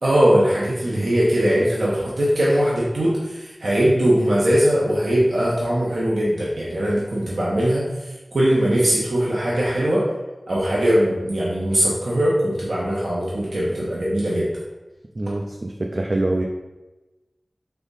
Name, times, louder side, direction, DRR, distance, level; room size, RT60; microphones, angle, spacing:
voice 1, 0.0-7.9 8.3-10.0 10.5-14.5, equal, 80° right, -7 dB, 0.9 m, -20 dB
voice 2, 15.2-16.4, right 2 dB, 50° right, 2 dB, 0.3 m, -25 dB
3.5 x 3.4 x 4.0 m, 1.1 s
wide cardioid pair, 60°, 0 cm